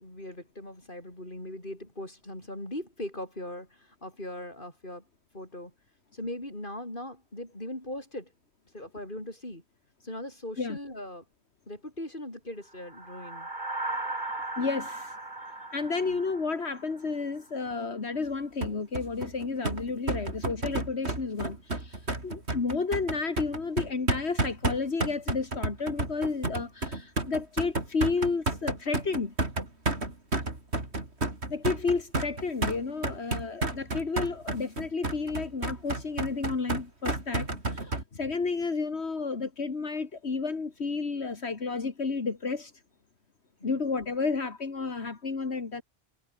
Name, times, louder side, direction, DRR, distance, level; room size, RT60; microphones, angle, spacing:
voice 1, 0.0-5.1 5.3-5.7 6.1-8.3 8.7-9.6 10.0-11.2 11.7-13.5 16.0-16.2 30.0-30.2 43.6-43.9, left 1 dB, 50° left, 7.9 m, -40 dB
sound 1, 12.8-17.3, right 2 dB, 45° right, 3.3 m, -37 dB
voice 2, 14.6-15.2 15.7-29.3 31.5-42.7 43.6-45.8, left 4 dB, 80° left, 2.4 m, -31 dB
sound 2, 18.6-38.0, right 2 dB, 80° right, 4.4 m, -31 dB
omnidirectional pair, 1.1 m